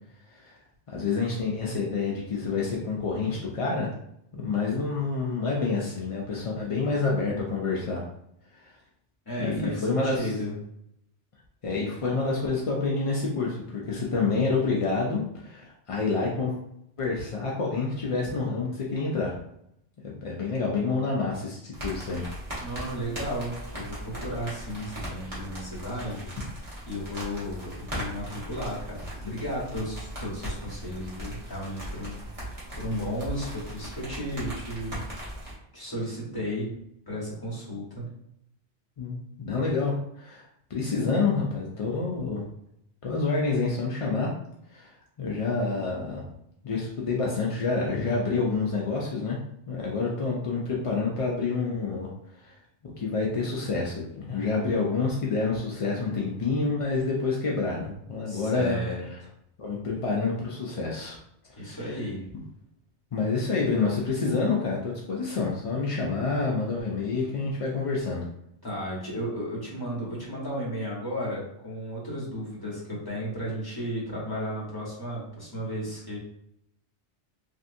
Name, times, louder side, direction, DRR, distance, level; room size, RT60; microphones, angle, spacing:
voice 1, 0.9-3.9 4.3-8.0 9.4-10.3 11.6-16.6 17.0-19.3 20.0-22.2 39.0-40.4 40.7-42.4 43.0-44.3 44.7-44.9 45.2-46.2 46.6-49.4 49.7-52.1 52.4-52.5 53.0-58.8 59.1-59.2 59.6-61.2 61.6-61.9 63.1-68.2, left 4 dB, 55° left, -3 dB, 0.3 m, -28 dB
voice 2, 9.2-10.6 22.6-26.3 26.9-35.0 35.7-36.7 37.1-38.0 58.3-59.3 61.6-62.3 68.6-76.2, equal, 20° left, -6 dB, 1.0 m, -34 dB
sound 1, 21.7-35.5, equal, 30° right, 1.2 m, -38 dB
3.2 x 2.6 x 2.6 m, 0.76 s
omnidirectional pair, 1.2 m